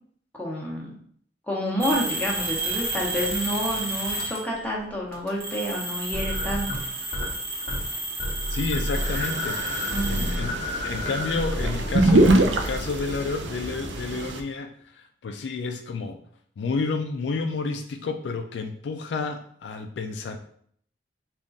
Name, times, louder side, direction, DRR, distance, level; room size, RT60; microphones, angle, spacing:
voice 1, 0.4-0.9 1.5-6.8 9.9-10.4, equal, 10° left, -4 dB, 0.9 m, -29 dB
sound 1, 1.8-4.6 5.1-10.3, right 2 dB, 55° right, 1.0 m, -31 dB
sound 2, 6.1-7.3 7.6-7.9 8.2-12.9, left 1 dB, 30° left, 0.9 m, -31 dB
voice 2, 8.5-16.2 16.6-20.4, left 4 dB, 70° left, 6 dB, 0.3 m, -30 dB
sound 3, 8.9-14.4, right 2 dB, 80° right, 0.5 m, -25 dB
3.6 x 2.5 x 3.9 m, 0.62 s
head